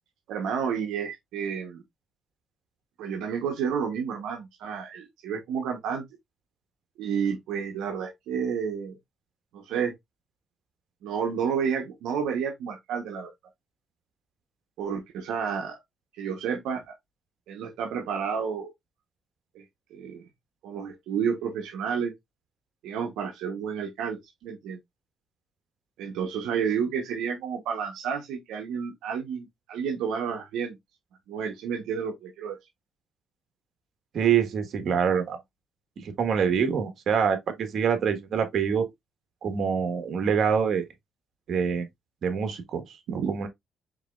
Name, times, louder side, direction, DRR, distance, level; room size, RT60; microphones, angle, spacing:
voice 1, 0.3-1.8 3.0-6.0 7.0-9.0 9.5-9.9 11.0-13.3 14.8-15.8 16.2-16.9 17.5-18.7 19.5-19.6 19.9-20.3 20.6-22.1 22.8-24.8 26.0-30.8 31.3-32.6 43.1-43.3, right 7 dB, 90° right, 0.9 m, -30 dB
voice 2, 34.1-35.4 36.0-38.9 39.4-40.8 41.5-41.9 42.2-42.8 43.1-43.5, right 7 dB, 60° right, 1.3 m, -25 dB
4.8 x 4.0 x 2.3 m
cardioid pair, 90°, 0 cm